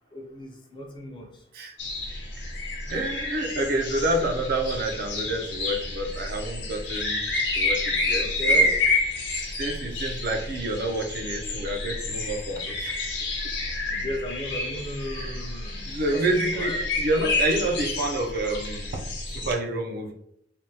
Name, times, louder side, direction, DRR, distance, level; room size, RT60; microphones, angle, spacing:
voice 1, 0.1-1.3 8.2-8.7 13.9-15.8 16.1-16.2 16.5-16.8, equal, 25° left, 1 dB, 0.5 m, -35 dB
sound 1, 1.8-19.5, left 2 dB, 70° left, 0.8 m, -29 dB
voice 2, 2.9-7.2 7.5-8.7 9.6-13.0 15.1-15.5 15.9-20.1, right 1 dB, 55° right, 3 dB, 0.4 m, -28 dB
3.4 x 2.2 x 2.7 m, 0.74 s
head